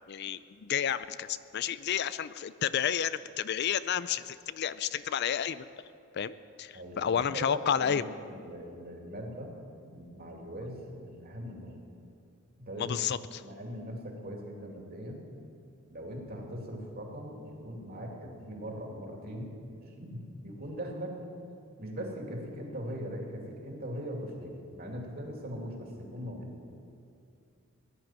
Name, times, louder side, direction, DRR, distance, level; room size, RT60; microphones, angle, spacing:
voice 1, 0.1-5.7 6.1-8.0 12.8-13.4, left 8 dB, 50° left, 15 dB, 0.4 m, -31 dB
voice 2, 6.7-8.1 8.3-9.5 9.9-11.8 12.6-13.0 13.4-15.3 15.9-19.5 20.0-21.2 21.8-26.6, equal, 45° right, 0 dB, 2.8 m, -40 dB
18.0 x 11.0 x 7.5 m, 2.5 s
head